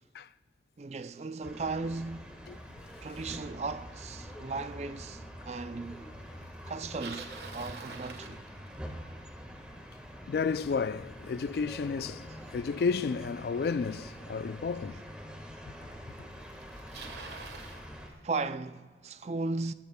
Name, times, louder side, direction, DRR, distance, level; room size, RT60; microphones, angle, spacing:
voice 1, 0.8-2.5 3.0-6.0 6.7-8.4 18.2-19.7, right 3 dB, 35° right, 0.4 m, -36 dB
sound 1, 1.4-18.1, equal, 5° right, 1.5 m, -45 dB
Bicycle, 6.6-9.0 14.0-14.1 15.0-15.1 16.1-16.2 16.4-17.9, right 4 dB, 70° right, 1.3 m, -45 dB
voice 2, 10.3-12.3 12.5-15.0 16.2-16.3, left 5 dB, 55° left, 0.3 m, -32 dB
17.5 x 15.5 x 2.3 m
head